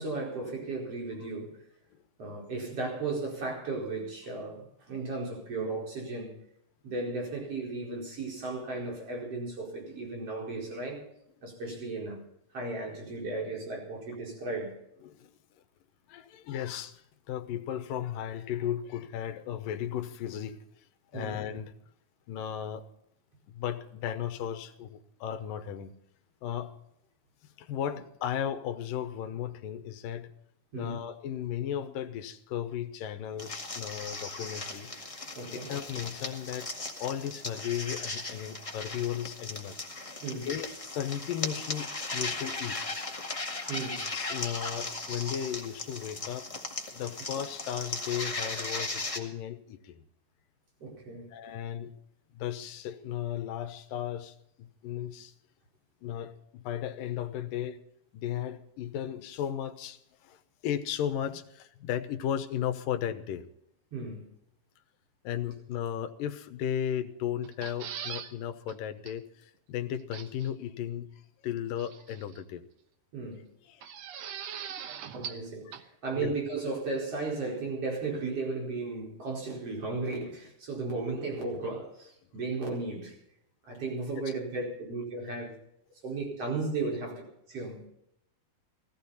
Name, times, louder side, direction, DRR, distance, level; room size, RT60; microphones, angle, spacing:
voice 1, 0.0-1.6 2.2-6.4 6.8-11.0 11.4-12.2 12.5-14.8 21.1-21.4 30.7-31.0 35.4-35.7 40.2-40.5 43.4-44.1 50.8-51.3 63.9-64.3 73.1-73.5 75.1-83.1 83.7-85.5 86.0-87.2 87.5-87.8, right 3 dB, 40° right, 5.6 m, -35 dB
voice 2, 16.1-17.0 17.3-20.6 21.1-21.7 22.3-22.9 23.5-25.9 26.4-26.7 27.6-30.3 30.7-34.9 35.7-36.7 37.0-39.8 40.4-42.9 44.1-46.5 46.9-50.0 51.3-51.9 52.3-55.3 56.0-57.8 58.1-63.5 65.2-71.1 71.4-72.6 73.7-73.8 74.5-74.9 75.3-75.4 75.7-75.8 76.2-76.3, left 10 dB, 75° left, 2.5 m, -35 dB
sound 1, 33.4-49.2, left 2 dB, 25° left, 0.6 m, -37 dB
sound 2, 67.4-68.3 68.7-68.8 69.1-69.2 70.1-70.5 71.8-72.4 73.8-75.5 75.7-75.8, right 8 dB, 65° right, 1.7 m, -40 dB
18.5 x 15.0 x 4.2 m
omnidirectional pair, 4.3 m